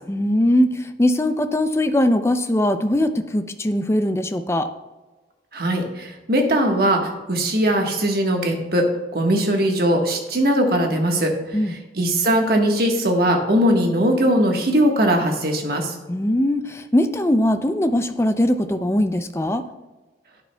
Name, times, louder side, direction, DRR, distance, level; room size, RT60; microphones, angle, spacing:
voice 1, 0.1-4.7 11.5-11.7 16.1-19.7, left 1 dB, 15° left, 9 dB, 0.4 m, -20 dB
voice 2, 5.5-8.8 9.1-11.3 11.6-15.9, equal, 55° right, 2 dB, 1.4 m, -20 dB
11.5 x 9.5 x 2.3 m, 1.2 s
head